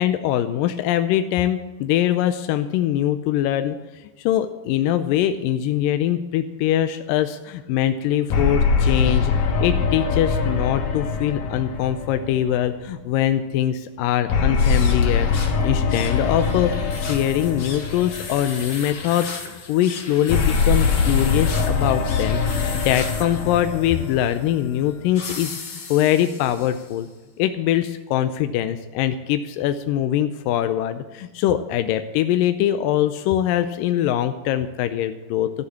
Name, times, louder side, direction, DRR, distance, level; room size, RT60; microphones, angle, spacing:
voice 1, 0.0-9.3 9.6-22.4 22.7-27.1 27.4-35.5, left 11 dB, 80° left, 9 dB, 2.1 m, -23 dB
sound 1, 8.3-12.9 14.3-18.7 20.3-24.9, left 5 dB, 65° left, 2.9 m, -22 dB
sound 2, 14.5-27.0, left 4 dB, 45° left, 1.4 m, -36 dB
13.0 x 8.1 x 8.3 m, 1.2 s
omnidirectional pair, 4.3 m